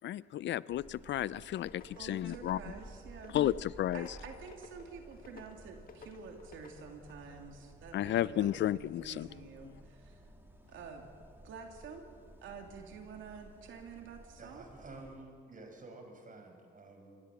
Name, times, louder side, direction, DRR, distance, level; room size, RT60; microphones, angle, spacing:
voice 1, 0.0-2.6 3.3-4.1 7.9-9.3 9.6-9.7, left 12 dB, 65° left, 19 dB, 0.5 m, -33 dB
sound 1, 0.7-15.2, right 1 dB, 10° right, 3.1 m, -55 dB
sound 2, 1.3-7.1, left 5 dB, 45° left, 1.9 m, -57 dB
voice 2, 2.0-3.4 3.9-10.2 10.7-11.1 11.4-12.1 12.4-14.6, right 5 dB, 80° right, 3 dB, 3.0 m, -49 dB
voice 3, 14.4-17.2, right 2 dB, 40° right, 4 dB, 5.5 m, -51 dB
26.0 x 19.5 x 7.2 m, 2.3 s
cardioid pair, 90°, 20 cm